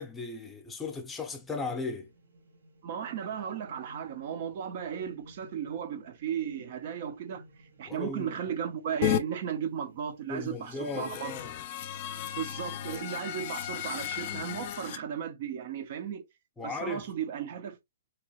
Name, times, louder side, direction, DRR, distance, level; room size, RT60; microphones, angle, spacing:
voice 1, 0.0-2.1 7.9-8.3 10.3-11.6 16.6-17.1, left 3 dB, 10° left, 0.7 m, -36 dB
sound 1, 1.4-12.1, right 1 dB, 80° right, 1.5 m, -57 dB
voice 2, 2.8-11.3 12.4-16.2 16.6-17.8, right 8 dB, 50° right, 0.7 m, -35 dB
sound 2, 9.0-9.2 10.6-15.0, left 11 dB, 45° left, 0.5 m, -34 dB
3.0 x 2.9 x 2.9 m
hypercardioid pair, 145°, 0 cm